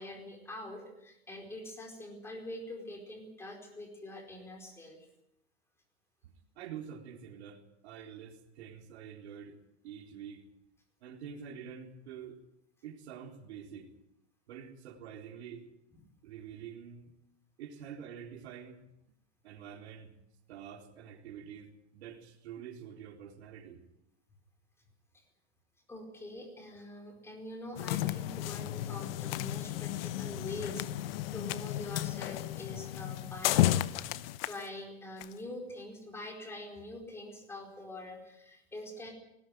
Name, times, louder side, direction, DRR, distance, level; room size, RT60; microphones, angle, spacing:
voice 1, 0.0-5.1 25.9-34.1 34.4-39.1, left 1 dB, 5° left, 2 dB, 4.8 m, -44 dB
voice 2, 6.2-9.6 9.8-10.4 11.0-12.4 12.8-13.9 14.5-15.7 16.2-17.2 17.6-18.9 19.4-20.1 20.5-23.8, right 8 dB, 75° right, 4 dB, 3.9 m, -47 dB
sound 1, 27.8-34.4, left 14 dB, 60° left, 1.0 m, -33 dB
Walk footsteps, 27.9-28.2 28.5-28.9 29.3-30.3 30.7-31.8 32.2-32.5 32.9-33.3 33.6-34.7 35.2-35.4, left 17 dB, 35° left, 0.8 m, -44 dB
20.0 x 16.5 x 9.6 m, 0.81 s
supercardioid pair, 165°, 33 cm